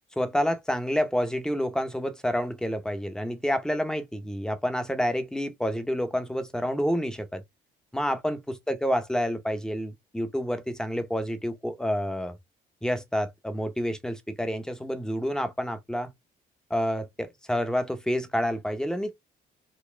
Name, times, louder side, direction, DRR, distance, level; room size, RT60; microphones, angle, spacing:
voice 1, 0.2-7.4 7.9-12.4 12.8-16.1 16.7-19.1, equal, 5° left, 0.9 m, -28 dB
4.0 x 2.2 x 3.3 m
cardioid pair, 90°, 20 cm